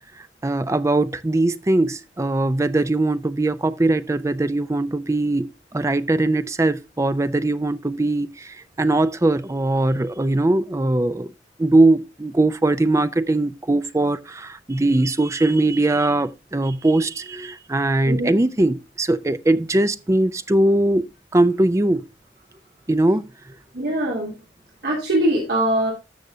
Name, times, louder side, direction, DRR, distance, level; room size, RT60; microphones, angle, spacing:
voice 1, 0.2-5.5 5.7-11.3 11.6-21.1 21.3-22.0 22.9-23.3, right 2 dB, 15° right, 0.4 m, -20 dB
voice 2, 23.7-24.3 24.8-25.9, right 1 dB, 65° right, 3.0 m, -22 dB
13.5 x 6.2 x 2.7 m
head